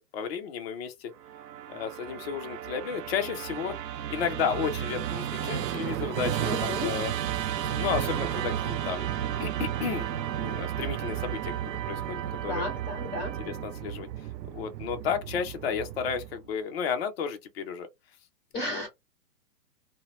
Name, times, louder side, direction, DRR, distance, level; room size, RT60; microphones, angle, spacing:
voice 1, 0.1-1.1 1.7-3.7 4.1-7.1 7.6-9.1 9.4-10.1 10.4-11.6 11.9-12.6 13.4-14.3 14.5-17.9 18.5-18.8, left 7 dB, 40° left, 0.5 m, -33 dB
Musical instrument, 1.2-16.5, right 11 dB, 80° right, 0.6 m, -33 dB
voice 2, 6.4-6.9 12.5-13.3 18.5-18.9, left 2 dB, 20° left, 1.2 m, -33 dB
2.7 x 2.1 x 2.9 m
hypercardioid pair, 150°, 49 cm